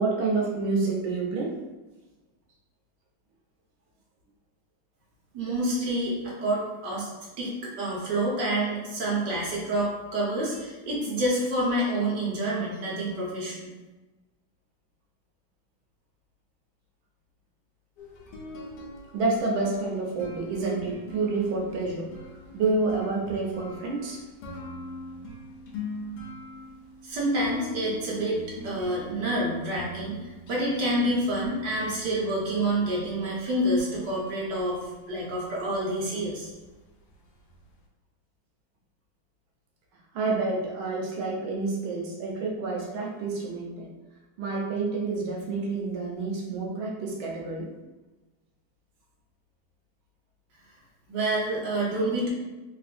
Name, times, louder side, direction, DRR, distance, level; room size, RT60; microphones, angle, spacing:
voice 1, 0.0-1.6 19.1-22.1 22.5-24.2 40.1-43.9 44.4-47.7, right 3 dB, 85° right, -2 dB, 1.5 m, -28 dB
voice 2, 5.3-7.1 7.4-13.7 27.0-28.3 28.6-36.5 51.1-52.3, right 1 dB, 65° right, -5 dB, 1.5 m, -28 dB
sound 1, 18.0-37.8, left 1 dB, 70° left, 1.2 m, -44 dB
3.5 x 2.4 x 2.4 m, 1.2 s
omnidirectional pair, 2.1 m